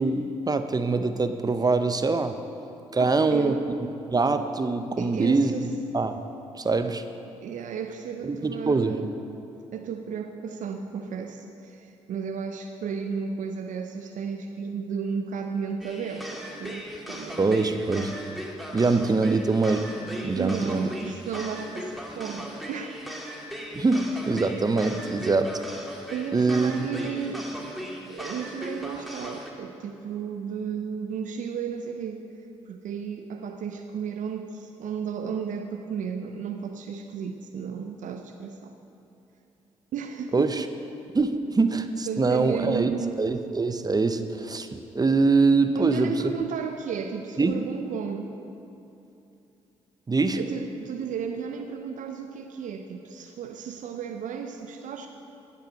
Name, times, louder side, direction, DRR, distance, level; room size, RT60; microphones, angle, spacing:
voice 1, 0.0-2.4 2.9-3.6 4.1-5.5 5.9-6.2 6.6-7.0 8.2-9.0 17.4-18.2 18.7-19.8 20.2-20.9 23.7-25.6 26.3-26.9 40.3-40.7 41.1-42.9 43.2-46.1 47.4-47.5 50.1-50.4, right 3 dB, 25° right, 8 dB, 0.8 m, -23 dB
voice 2, 3.0-3.7 5.0-5.7 7.4-9.1 9.7-17.8 19.2-19.4 20.3-23.1 26.1-27.5 28.1-32.2 32.7-38.7 39.9-40.7 42.1-43.2 45.7-48.3 50.4-55.1, right 7 dB, 65° right, 5 dB, 0.7 m, -34 dB
sound 1, 15.8-29.5, equal, ahead, 2.1 m, -38 dB
16.5 x 5.6 x 6.4 m, 2.7 s
hypercardioid pair, 45°, 14 cm